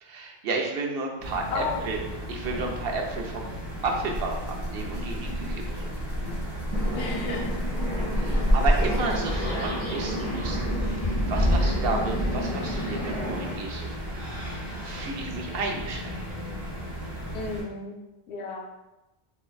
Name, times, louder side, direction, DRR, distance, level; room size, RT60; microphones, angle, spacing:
voice 1, 0.0-2.0 2.3-3.5 3.8-5.9 8.1-13.9 14.8-16.1, right 3 dB, 70° right, 1 dB, 0.8 m, -32 dB
sound 1, 1.2-17.6, equal, ahead, 1.4 m, -36 dB
voice 2, 1.5-1.9 6.9-7.6 8.2-8.5 17.3-18.0 18.3-18.7, left 3 dB, 85° left, 1 dB, 0.9 m, -33 dB
Rattle (instrument), 4.1-9.4, equal, 55° left, 0.9 m, -28 dB
sound 2, 6.7-13.6, equal, 30° left, 1.3 m, -29 dB
4.0 x 3.2 x 2.3 m, 0.99 s
omnidirectional pair, 1.1 m